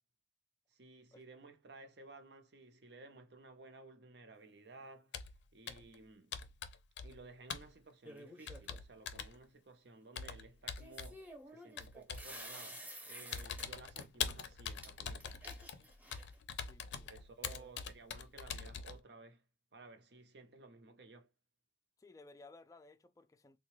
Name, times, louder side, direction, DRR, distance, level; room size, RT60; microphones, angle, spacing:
voice 1, 0.7-5.1 5.5-6.4 7.0-15.4 17.0-19.4 19.7-21.3, right 3 dB, 70° right, 0.7 m, -56 dB
Computer keyboard, 5.1-5.4 5.7-5.9 6.3-7.2 7.5-7.7 8.5-9.3 10.1-11.2 11.8-12.3 12.8-13.0 13.3-19.0, left 7 dB, 80° left, 0.5 m, -43 dB
sound 1, 8.0-8.8 10.8-13.7 14.0-14.3 14.8-14.9 15.2-16.4, equal, 10° right, 0.7 m, -51 dB
voice 2, 16.5-17.1 17.4-17.7 22.0-23.6, left 3 dB, 20° left, 0.3 m, -59 dB
3.6 x 2.2 x 2.9 m
head